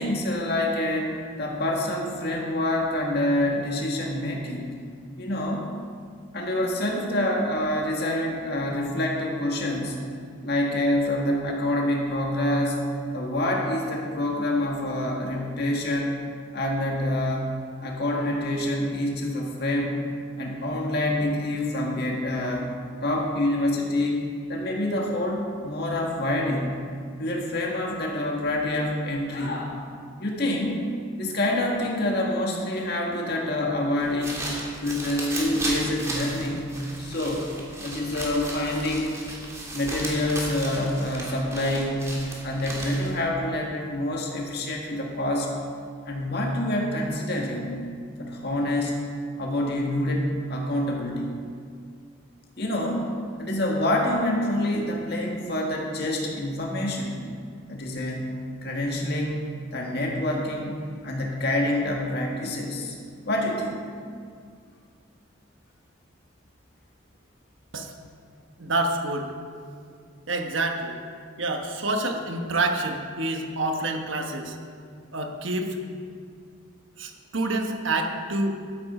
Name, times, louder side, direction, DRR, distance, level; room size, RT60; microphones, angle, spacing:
voice 1, 0.0-4.7 5.2-5.6 6.3-10.0 10.4-12.8 13.1-16.2 16.5-20.0 20.4-22.8 23.0-26.8 27.2-29.8 30.2-30.8 31.2-34.5 34.8-36.7 37.0-37.5 37.8-39.1 39.7-45.5 46.1-47.8 48.2-49.0 49.4-51.3 52.6-53.1 53.4-57.2 57.7-58.3 58.6-59.4 59.7-60.8 61.0-63.0 63.3-63.8, left 1 dB, 50° left, 0 dB, 1.8 m, -27 dB
sound 1, 34.0-43.2, right 1 dB, 15° right, 1.8 m, -35 dB
voice 2, 68.6-69.3 70.3-71.0 71.4-74.6 75.1-75.8 77.0-78.5, right 2 dB, 70° right, 4 dB, 1.1 m, -27 dB
13.0 x 9.6 x 4.3 m, 2.2 s
head